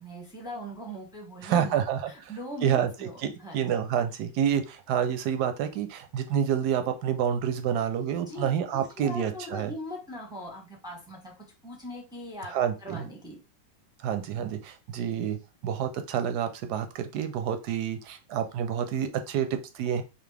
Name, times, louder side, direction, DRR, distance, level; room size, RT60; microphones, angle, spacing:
voice 1, 0.0-3.1 3.4-3.8 8.2-11.3 11.6-12.5 12.8-13.4, equal, 5° right, -1 dB, 0.5 m, -40 dB
voice 2, 1.4-2.3 2.6-2.9 3.2-9.7 12.5-13.0 14.0-15.4 15.6-20.0, right 9 dB, 70° right, 8 dB, 1.0 m, -28 dB
4.0 x 2.9 x 3.3 m, 0.30 s
omnidirectional pair, 2.0 m